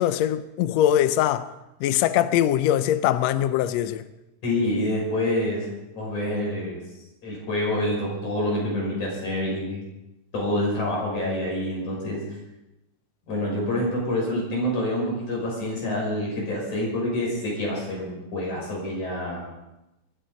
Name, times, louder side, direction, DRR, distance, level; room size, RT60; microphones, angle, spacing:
voice 1, 0.0-1.5 1.8-4.1, left 11 dB, 80° left, 1.5 m, -22 dB
voice 2, 4.4-5.7 6.0-6.8 7.2-9.8 10.3-12.2 13.3-19.5, left 1 dB, 65° left, 7.1 m, -27 dB
23.5 x 13.0 x 3.9 m
omnidirectional pair, 3.7 m